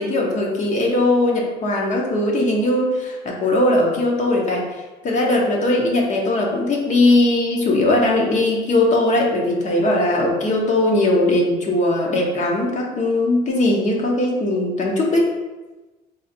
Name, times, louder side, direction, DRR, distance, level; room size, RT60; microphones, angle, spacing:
voice 1, 0.0-4.6 5.0-15.3, left 1 dB, 45° left, -1 dB, 0.9 m, -19 dB
3.9 x 2.5 x 4.3 m, 1.2 s
cardioid pair, 110°, 17 cm